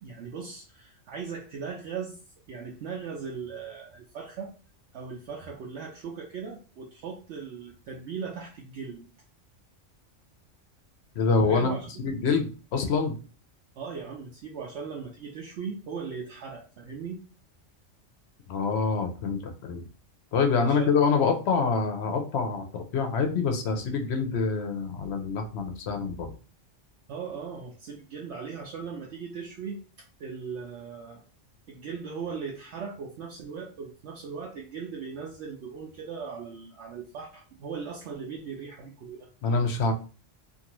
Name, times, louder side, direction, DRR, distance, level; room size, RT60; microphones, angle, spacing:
voice 1, 0.0-2.2 2.5-4.5 4.9-9.1 11.5-11.9 13.8-17.2 20.6-20.9 27.1-31.2 31.7-39.3, right 6 dB, 70° right, -2 dB, 0.8 m, -38 dB
voice 2, 11.2-11.7 12.0-13.2 18.5-19.8 20.3-26.3 39.4-39.9, left 5 dB, 65° left, 5 dB, 0.8 m, -26 dB
2.6 x 2.5 x 2.9 m, 0.36 s
omnidirectional pair, 1.3 m